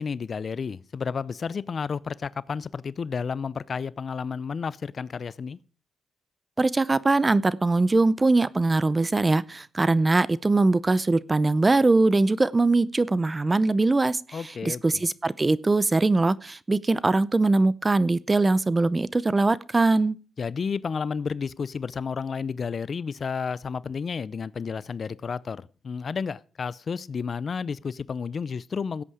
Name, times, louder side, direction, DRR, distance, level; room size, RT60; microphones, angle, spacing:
voice 1, 0.0-5.6 14.3-15.0 20.4-29.0, left 5 dB, 50° left, 0.5 m, -31 dB
voice 2, 6.6-14.2 14.6-20.2, right 3 dB, 25° right, 0.6 m, -22 dB
16.5 x 8.4 x 4.9 m
cardioid pair, 105°, 0 cm